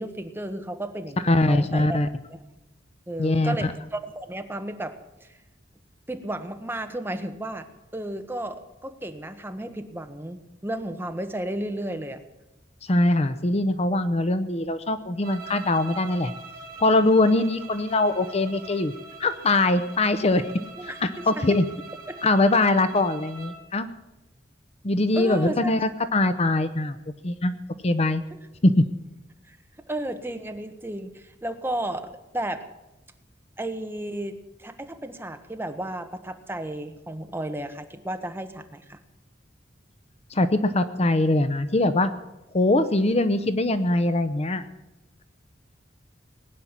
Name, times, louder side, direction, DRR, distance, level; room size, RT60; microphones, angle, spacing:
voice 1, 0.0-2.0 2.3-2.4 3.1-5.3 6.1-7.7 7.9-12.2 20.8-21.5 22.1-22.2 25.1-25.8 28.3-28.4 29.5-29.6 29.9-32.7 33.6-39.0, right 1 dB, 10° right, 7 dB, 1.2 m, -33 dB
voice 2, 1.2-2.1 3.2-3.6 12.9-16.3 16.8-18.9 19.2-20.5 20.8-21.7 22.2-23.9 24.8-27.0 27.2-27.6 27.8-28.2 28.6-28.9 40.3-42.1 42.5-44.6, left 2 dB, 35° left, 11 dB, 0.7 m, -22 dB
sound 1, 15.2-23.6, right 4 dB, 55° right, 2.6 m, -43 dB
19.5 x 9.7 x 7.4 m, 0.98 s
head